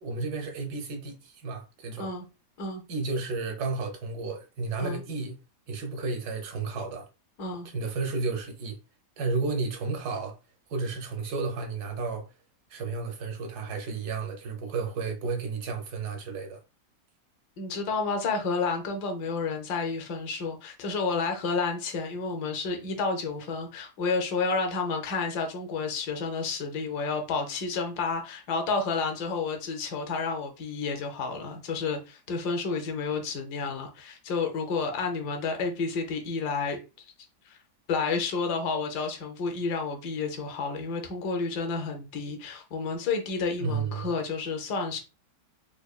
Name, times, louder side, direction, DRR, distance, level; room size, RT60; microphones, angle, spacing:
voice 1, 0.0-2.1 2.9-5.4 5.7-7.1 7.6-8.8 9.2-10.4 10.7-12.3 12.7-16.6 43.6-44.1, right 4 dB, 70° right, 1.3 m, -32 dB
voice 2, 17.6-37.1 37.5-37.6 37.9-45.0, left 4 dB, 75° left, 1.3 m, -30 dB
5.0 x 2.2 x 2.3 m
omnidirectional pair, 1.8 m